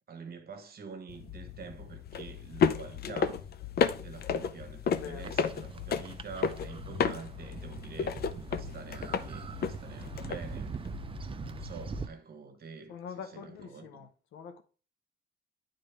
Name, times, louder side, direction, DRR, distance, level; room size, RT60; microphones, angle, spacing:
voice 1, 0.1-3.5 4.0-10.7 11.4-12.9 13.2-14.1, right 5 dB, 50° right, 1.2 m, -46 dB
sound 1, 1.1-12.0, left 6 dB, 50° left, 0.5 m, -33 dB
voice 2, 5.0-5.3 12.9-14.6, left 7 dB, 80° left, 0.9 m, -44 dB
sound 2, 5.2-12.1, right 5 dB, 25° right, 0.4 m, -43 dB
8.8 x 3.9 x 3.3 m
cardioid pair, 90°, 20 cm